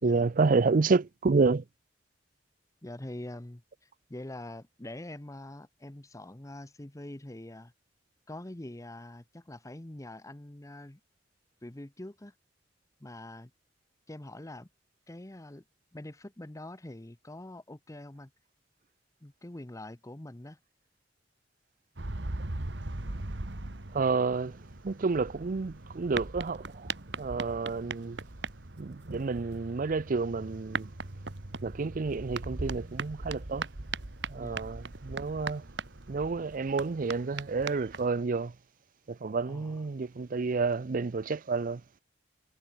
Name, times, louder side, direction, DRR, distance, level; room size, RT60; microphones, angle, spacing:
voice 1, 0.0-1.6 23.9-24.6 24.8-28.2 28.8-30.9 31.6-33.7 34.3-35.6 36.1-38.5 39.1-41.8, right 4 dB, 50° right, 0.5 m, -29 dB
voice 2, 2.8-7.7 8.3-11.0 11.6-12.3 13.0-13.5 14.1-14.7 15.1-15.6 15.9-18.3 19.2-20.6 34.4-34.7 39.5-39.8, left 1 dB, 20° left, 0.9 m, -44 dB
sound 1, 22.0-38.1, right 3 dB, 70° right, 1.7 m, -39 dB
head